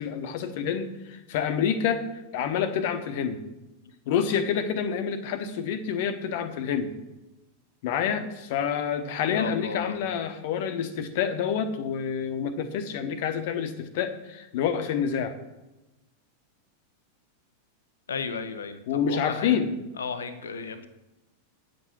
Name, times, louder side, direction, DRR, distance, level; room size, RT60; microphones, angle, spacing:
voice 1, 0.0-2.0 2.3-3.4 4.1-6.9 7.8-15.4 18.9-19.7, left 7 dB, 50° left, 9 dB, 1.1 m, -28 dB
voice 2, 9.3-9.9 18.1-19.6 20.0-20.9, left 5 dB, 70° left, 11 dB, 0.7 m, -34 dB
9.6 x 7.8 x 5.9 m, 1.0 s
figure-of-eight pair, 90°, 0 cm